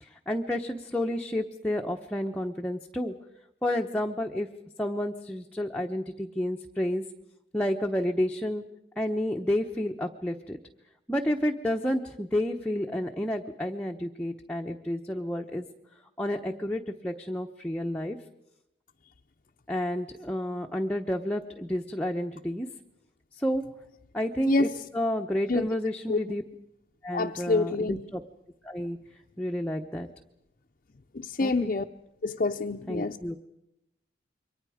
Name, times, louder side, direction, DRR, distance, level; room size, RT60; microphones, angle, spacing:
voice 1, 0.0-3.1 3.6-4.5 4.8-7.0 7.5-8.6 9.0-10.6 11.1-15.7 16.2-18.2 19.7-22.7 23.4-23.6 24.1-26.4 27.0-28.2 28.6-29.0 29.4-30.1 31.4-31.7 32.9-33.4, left 1 dB, 5° left, 1 dB, 0.9 m, -30 dB
voice 2, 27.1-28.0 31.1-31.8 32.2-33.2, left 3 dB, 45° left, 2 dB, 0.7 m, -26 dB
28.0 x 23.5 x 5.0 m, 0.85 s
head